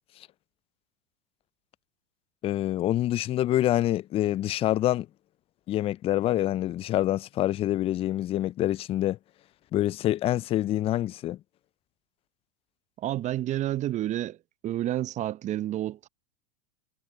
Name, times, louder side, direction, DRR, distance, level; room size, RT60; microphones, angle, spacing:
voice 1, 2.4-5.1 5.7-9.2 9.7-11.4, left 13 dB, 30° left, 0.4 m, -26 dB
voice 2, 13.0-14.4 14.6-16.1, right 13 dB, 35° right, 0.8 m, -29 dB
hypercardioid pair, 100°, 20 cm